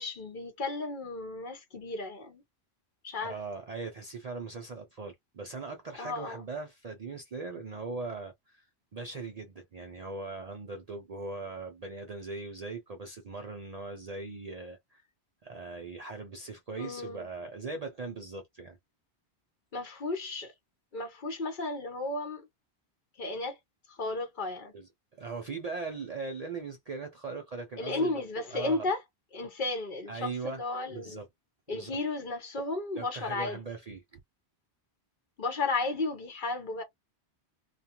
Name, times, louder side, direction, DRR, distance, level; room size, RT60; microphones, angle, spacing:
voice 1, 0.0-2.4 3.0-3.4 6.0-6.4 16.8-17.3 19.7-20.5 20.9-22.5 23.2-23.6 23.9-24.7 27.8-29.0 29.3-31.2 31.7-33.6 35.4-36.8, left 3 dB, 50° left, 0.9 m, -34 dB
voice 2, 3.2-8.7 8.9-15.0 15.4-18.8 24.7-24.9 25.2-28.2 28.5-28.9 30.1-30.6 30.9-31.3 31.7-32.0 33.0-34.2, right 3 dB, 50° right, 0.5 m, -40 dB
2.4 x 2.3 x 2.8 m
omnidirectional pair, 1.1 m